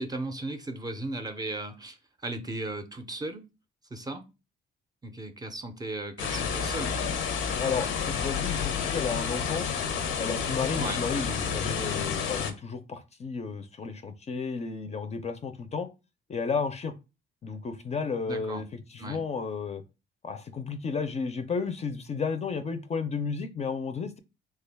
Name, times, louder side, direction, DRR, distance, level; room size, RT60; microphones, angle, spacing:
voice 1, 0.0-3.5 3.9-4.2 5.0-7.0 10.8-11.0 18.3-18.6 19.0-19.2, right 2 dB, 20° right, 7 dB, 0.5 m, -36 dB
sound 1, 6.2-12.5, left 6 dB, 85° left, 0.6 m, -30 dB
voice 2, 7.6-9.7 10.2-15.9 16.3-16.9 17.4-19.8 20.2-24.2, left 5 dB, 35° left, 8 dB, 0.4 m, -32 dB
3.3 x 2.2 x 3.4 m, 0.28 s
cardioid pair, 90°, 20 cm